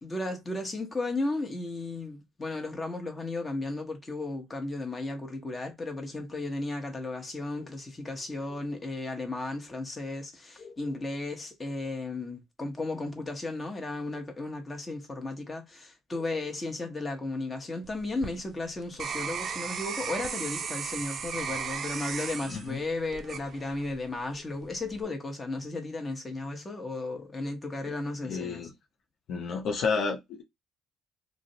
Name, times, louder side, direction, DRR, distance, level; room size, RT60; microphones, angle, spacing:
voice 1, 0.0-28.6, left 2 dB, 25° left, 0.9 m, -34 dB
sound 1, 17.8-24.1 24.6-25.0, right 6 dB, 50° right, 0.4 m, -36 dB
voice 2, 28.2-28.7 29.3-30.4, left 5 dB, 65° left, 0.5 m, -30 dB
2.5 x 2.0 x 2.6 m
supercardioid pair, 65°, 0 cm